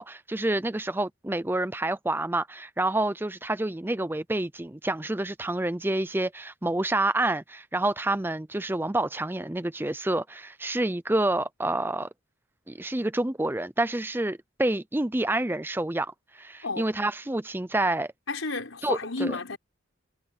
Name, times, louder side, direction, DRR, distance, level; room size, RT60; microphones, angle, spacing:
voice 1, 0.0-12.1 12.7-18.1 18.8-19.4, right 2 dB, 10° right, 0.5 m, -28 dB
voice 2, 18.3-19.6, left 3 dB, 85° left, 5.0 m, -31 dB
head